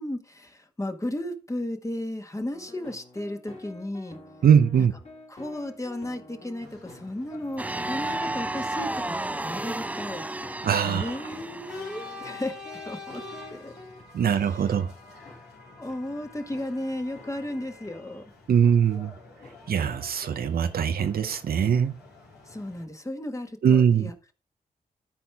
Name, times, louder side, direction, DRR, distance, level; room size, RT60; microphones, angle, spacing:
voice 1, 0.0-4.2 4.8-4.9 5.3-13.2 13.5-13.7 14.2-14.8 15.8-18.2 22.4-24.1, left 1 dB, 20° left, 1.5 m, -35 dB
sound 1, 2.5-14.1 14.6-14.8 15.2-15.4 15.9-16.0 16.5-16.7 17.1-17.3 17.8-17.9 18.6-18.8 19.4-19.6 20.2-20.3 21.0-21.1, left 2 dB, 40° left, 2.8 m, -47 dB
voice 2, 4.4-4.9 10.6-11.2 14.1-14.9 18.5-19.1 19.7-21.9 23.6-24.1, right 7 dB, 70° right, 0.7 m, -21 dB
sound 2, 6.6-22.8, left 3 dB, 85° left, 2.8 m, -47 dB
sound 3, 7.6-12.2, right 2 dB, 10° right, 0.3 m, -32 dB
13.0 x 4.3 x 3.5 m
supercardioid pair, 45°, 16 cm